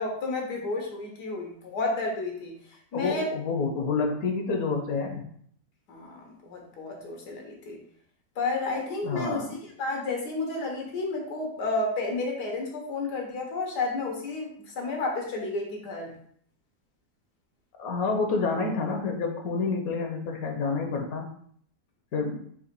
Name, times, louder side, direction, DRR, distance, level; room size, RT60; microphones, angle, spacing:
voice 1, 0.0-2.5 2.9-3.3 5.9-7.8 8.4-9.4 9.8-16.1, left 3 dB, 90° left, 0 dB, 1.6 m, -31 dB
voice 2, 2.9-5.2 9.0-9.5 17.8-21.3 22.1-22.4, left 4 dB, 70° left, 3 dB, 1.1 m, -28 dB
3.9 x 2.9 x 4.5 m, 0.62 s
omnidirectional pair, 1.7 m